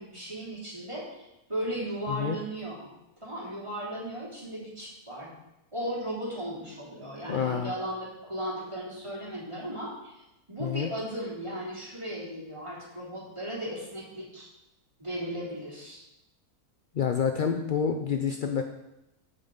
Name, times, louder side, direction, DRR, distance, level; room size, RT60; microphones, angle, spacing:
voice 1, 0.0-2.9 3.2-5.3 5.7-14.5 15.0-16.0, right 1 dB, 20° right, -7 dB, 3.1 m, -36 dB
voice 2, 7.3-7.7 10.6-10.9 16.9-18.6, left 7 dB, 75° left, 4 dB, 0.4 m, -28 dB
14.0 x 5.5 x 3.9 m, 0.92 s
omnidirectional pair, 1.6 m